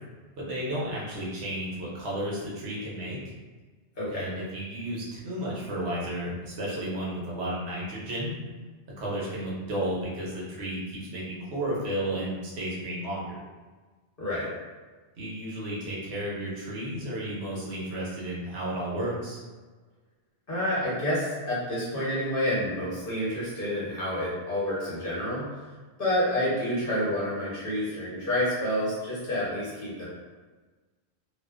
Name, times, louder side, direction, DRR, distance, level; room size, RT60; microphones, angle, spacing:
voice 1, 0.4-3.3 4.1-8.4 9.0-13.3 15.2-19.4, right 1 dB, 75° right, -5 dB, 1.0 m, -33 dB
voice 2, 4.0-4.3 14.2-14.5 20.5-25.6 26.0-30.1, left 1 dB, 55° left, -8 dB, 1.1 m, -29 dB
2.6 x 2.1 x 2.3 m, 1.3 s
omnidirectional pair, 1.1 m